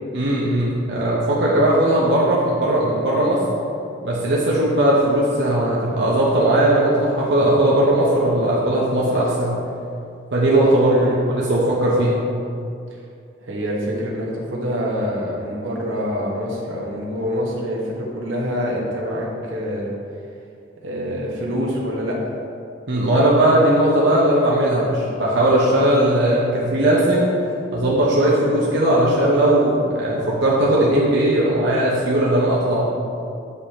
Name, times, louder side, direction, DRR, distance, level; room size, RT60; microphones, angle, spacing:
voice 1, 0.1-3.4 4.0-9.6 10.3-11.1 11.3-12.2 22.9-27.3 27.7-32.9, right 1 dB, 60° right, -6 dB, 0.9 m, -18 dB
voice 2, 10.9-11.2 12.9-13.0 13.4-19.9 20.8-22.2, equal, 85° right, -3 dB, 1.2 m, -26 dB
8.0 x 5.2 x 2.9 m, 2.5 s
head